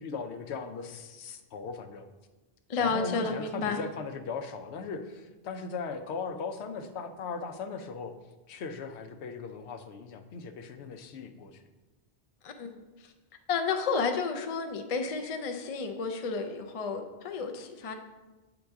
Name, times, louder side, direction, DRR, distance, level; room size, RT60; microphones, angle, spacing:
voice 1, 0.0-2.1 2.8-8.1 8.5-11.6, left 5 dB, 85° left, 8 dB, 0.9 m, -38 dB
voice 2, 2.7-3.8 12.4-13.1 13.5-17.9, left 4 dB, 55° left, 5 dB, 0.4 m, -31 dB
7.8 x 3.9 x 3.5 m, 1.2 s
omnidirectional pair, 1.1 m